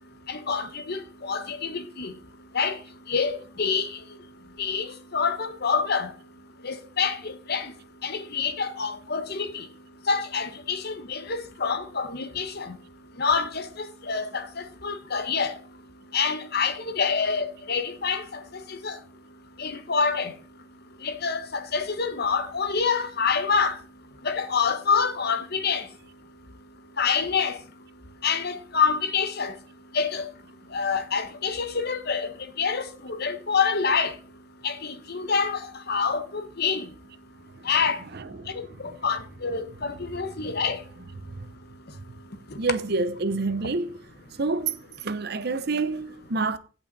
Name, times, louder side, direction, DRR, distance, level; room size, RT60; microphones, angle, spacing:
voice 1, 0.3-2.1 2.5-2.8 3.1-4.0 4.6-6.1 6.6-7.7 8.0-9.6 10.1-12.8 13.2-15.6 16.1-18.4 18.7-19.0 19.6-20.3 21.0-23.8 24.2-25.8 27.0-27.6 28.2-29.5 29.9-30.3 30.7-32.3 32.6-34.1 34.6-36.9 37.6-38.0 38.5-40.8, left 5 dB, 55° left, 1.2 m, -27 dB
voice 2, 37.5-39.0 39.9-40.0 40.4-40.5 41.0-41.5 42.6-44.0 44.3-46.6, right 3 dB, 55° right, 0.8 m, -29 dB
16.0 x 5.6 x 4.1 m
head